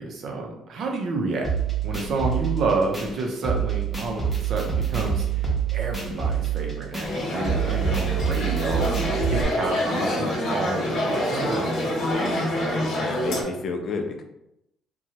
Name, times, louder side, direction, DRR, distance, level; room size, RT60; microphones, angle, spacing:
voice 1, 0.0-1.5 1.8-12.1, right 3 dB, 60° right, 1 dB, 0.6 m, -29 dB
sound 1, 1.4-9.4, right 7 dB, ahead, 0.8 m, -26 dB
sound 2, 7.0-13.4, left 1 dB, 75° left, 0.9 m, -26 dB
voice 2, 12.9-14.2, left 4 dB, 50° left, 4 dB, 0.5 m, -30 dB
2.8 x 2.2 x 2.8 m, 0.83 s
cardioid pair, 115°, 0 cm